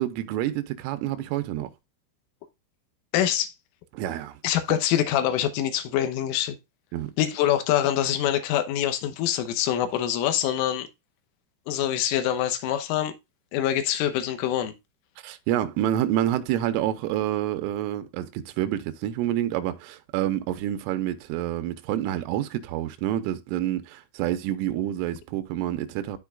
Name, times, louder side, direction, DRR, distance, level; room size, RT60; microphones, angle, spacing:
voice 1, 0.0-1.7 3.9-4.3 6.9-7.1 15.2-26.2, right 12 dB, 90° right, 3.2 m, -28 dB
voice 2, 3.1-3.5 4.4-6.6 7.2-10.9 11.7-13.1 13.5-14.7, left 11 dB, 80° left, 3.5 m, -25 dB
13.0 x 4.6 x 2.3 m
omnidirectional pair, 5.7 m